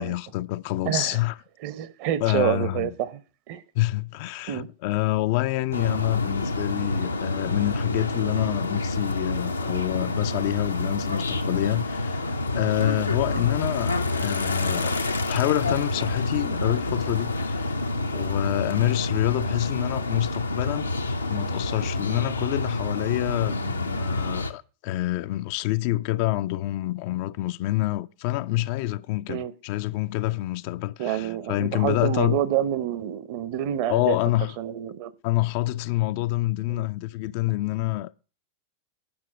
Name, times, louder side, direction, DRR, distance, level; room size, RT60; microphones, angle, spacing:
voice 1, 0.0-1.4 2.2-2.9 3.7-15.0 15.3-17.7 18.1-20.9 21.3-32.4 33.9-34.5 35.2-38.1, left 17 dB, 45° left, 0.4 m, -27 dB
voice 2, 0.8-1.2 1.6-3.2 3.5-3.6 4.5-4.7 29.3-29.5 31.0-34.2 34.6-35.1 36.7-36.8, right 11 dB, 45° right, 0.8 m, -27 dB
sound 1, 5.7-24.5, left 2 dB, 80° left, 0.7 m, -28 dB
8.8 x 5.9 x 6.1 m
figure-of-eight pair, 90°, 0 cm